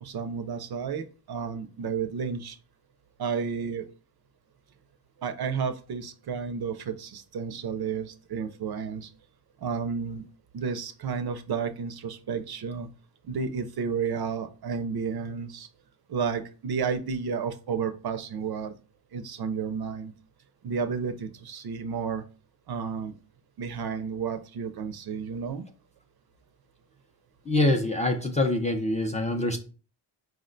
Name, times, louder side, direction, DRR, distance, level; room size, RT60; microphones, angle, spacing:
voice 1, 0.0-2.6 3.2-3.8 5.2-9.1 9.6-10.2 10.5-12.9 13.3-15.7 16.1-18.7 19.1-20.1 20.6-22.2 22.7-23.1 23.6-25.6, right 6 dB, 55° right, 9 dB, 0.5 m, -32 dB
voice 2, 27.5-29.6, left 1 dB, 15° left, 3 dB, 0.4 m, -25 dB
4.8 x 2.1 x 3.7 m, 0.36 s
wide cardioid pair, 125°, 48 cm